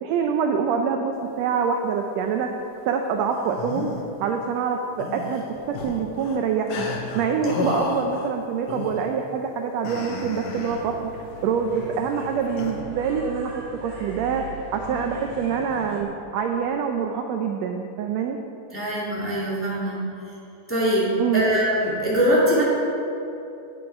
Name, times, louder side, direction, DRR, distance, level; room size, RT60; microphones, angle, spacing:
voice 1, 0.0-2.5 2.8-3.9 4.2-6.9 7.1-14.4 14.7-18.4 21.2-21.4, right 6 dB, 80° right, 4 dB, 1.6 m, -25 dB
sound 1, 3.3-4.0 5.0-6.4 6.7-8.3 8.7-9.1 9.9-11.0 12.6-12.8, left 3 dB, 90° left, 2.6 m, -32 dB
sound 2, 10.5-16.0, right 3 dB, 60° right, 2.7 m, -39 dB
voice 2, 18.7-20.0 20.7-22.6, equal, 5° left, -7 dB, 1.8 m, -22 dB
9.3 x 7.8 x 5.5 m, 2.9 s
omnidirectional pair, 3.6 m